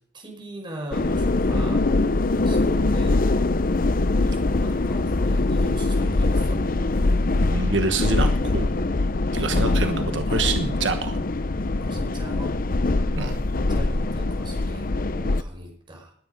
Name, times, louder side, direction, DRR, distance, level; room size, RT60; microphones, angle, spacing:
voice 1, 0.1-1.9 2.4-3.2 4.2-6.7 11.8-12.6 13.6-16.1, equal, 25° right, 1 dB, 5.3 m, -39 dB
sound 1, 0.9-15.4, left 2 dB, 50° left, 0.7 m, -23 dB
voice 2, 7.5-8.7 9.3-11.2 13.1-13.4, right 3 dB, 85° right, 6 dB, 1.3 m, -26 dB
20.5 x 9.6 x 5.2 m, 0.64 s
head